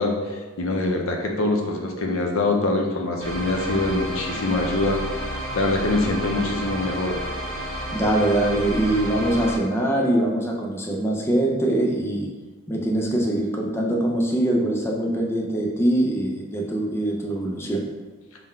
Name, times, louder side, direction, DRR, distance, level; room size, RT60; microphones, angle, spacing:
voice 1, 0.0-5.0 5.5-7.2, left 2 dB, 80° left, 2 dB, 0.6 m, -24 dB
sound 1, 3.2-9.6, equal, 80° right, 1.4 m, -31 dB
voice 2, 7.9-12.3 12.7-17.8, right 1 dB, 10° left, 0 dB, 0.4 m, -23 dB
3.8 x 2.1 x 4.3 m, 1.3 s
head